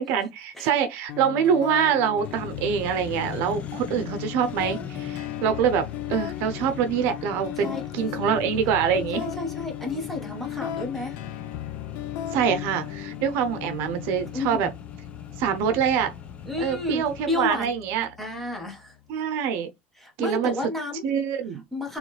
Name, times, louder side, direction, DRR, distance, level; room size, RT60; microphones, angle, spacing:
voice 1, 0.0-9.2 12.3-14.7 15.4-16.1 16.6-18.1 19.1-19.7 20.2-20.6 21.0-21.6, right 7 dB, 70° right, 0.7 m, -25 dB
sound 1, 1.1-19.1, left 12 dB, 70° left, 0.5 m, -37 dB
Accelerating revving vroom, 2.2-17.2, left 7 dB, 35° left, 0.8 m, -42 dB
voice 2, 9.1-11.1 14.3-14.7 16.5-17.7 18.2-18.9 20.0-21.0 21.7-22.0, left 2 dB, 5° left, 1.4 m, -31 dB
4.0 x 3.2 x 3.3 m
cardioid pair, 140°, 4 cm